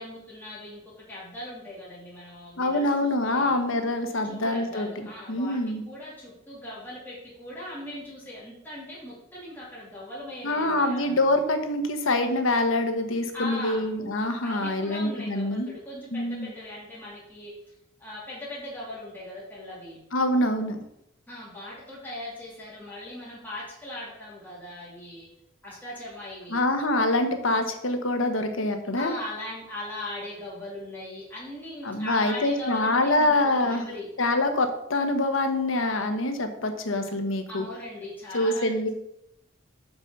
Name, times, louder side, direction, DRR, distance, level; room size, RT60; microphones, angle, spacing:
voice 1, 0.0-3.6 4.2-5.6 5.8-11.2 13.3-13.8 14.4-17.7 18.0-20.0 21.3-25.3 25.6-26.6 28.9-34.1 37.5-38.9, left 1 dB, 10° left, -7 dB, 2.7 m, -39 dB
voice 2, 2.6-4.9 5.3-5.8 10.4-15.7 16.1-16.5 20.1-20.8 26.5-29.2 31.8-33.8 34.2-37.6 38.3-38.9, left 2 dB, 75° left, 7 dB, 1.1 m, -25 dB
6.0 x 5.4 x 6.9 m, 0.79 s
head